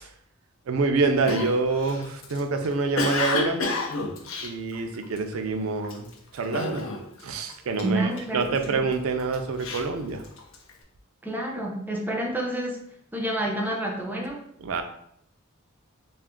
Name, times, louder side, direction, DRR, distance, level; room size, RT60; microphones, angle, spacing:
voice 1, 0.7-3.6 4.4-6.9 7.2-10.2 14.6-14.8, right 4 dB, 75° right, 6 dB, 0.4 m, -26 dB
Cough, 1.3-5.3 5.8-6.1 6.5-7.2 7.5-8.7 9.2-10.7, left 3 dB, 65° left, 0.5 m, -30 dB
voice 2, 7.8-8.8 11.2-12.8 13.1-14.4, right 1 dB, 10° right, 0 dB, 0.4 m, -29 dB
2.4 x 2.4 x 3.6 m, 0.70 s
head